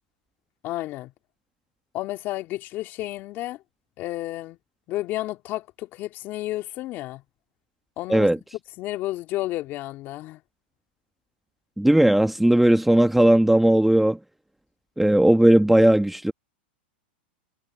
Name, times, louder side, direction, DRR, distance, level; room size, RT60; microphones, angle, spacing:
voice 1, 0.6-1.1 1.9-3.6 4.0-4.6 4.9-7.2 8.0-8.3 8.8-10.4, left 16 dB, 40° left, 3.2 m, -31 dB
voice 2, 11.8-14.2 15.0-16.3, right 1 dB, 5° right, 1.2 m, -17 dB
hypercardioid pair, 135°, 6 cm